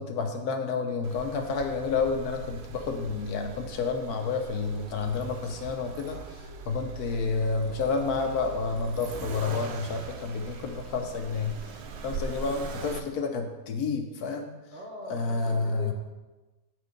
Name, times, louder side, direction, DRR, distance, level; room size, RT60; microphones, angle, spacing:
voice 1, 0.0-11.6 12.0-14.5 15.1-15.9, left 4 dB, 70° left, 5 dB, 1.2 m, -30 dB
Accelerating revving vroom, 1.0-13.0, right 4 dB, 70° right, 0.6 m, -41 dB
voice 2, 14.7-15.9, right 1 dB, 35° right, -2 dB, 1.0 m, -42 dB
7.7 x 4.5 x 5.1 m, 1.2 s
omnidirectional pair, 1.8 m